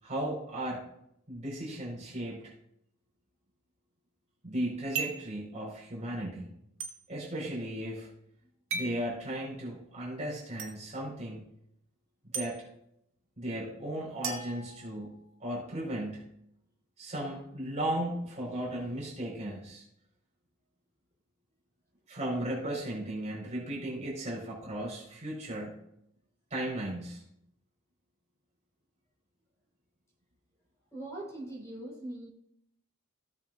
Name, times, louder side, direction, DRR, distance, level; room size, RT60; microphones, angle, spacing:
voice 1, 0.0-0.8 1.3-2.5 4.4-6.5 7.1-8.1 8.7-11.4 12.3-12.6 13.4-16.3 17.0-19.8 22.1-25.8 26.5-27.2, right 1 dB, 30° right, -4 dB, 4.3 m, -36 dB
sound 1, 4.9-5.3 6.8-6.9 8.7-9.0 10.6-10.7 12.3-12.5 14.2-15.3, right 5 dB, 60° right, 1.9 m, -36 dB
voice 2, 30.9-32.3, right 1 dB, 15° left, -4 dB, 4.6 m, -41 dB
17.5 x 7.5 x 2.5 m, 0.76 s
head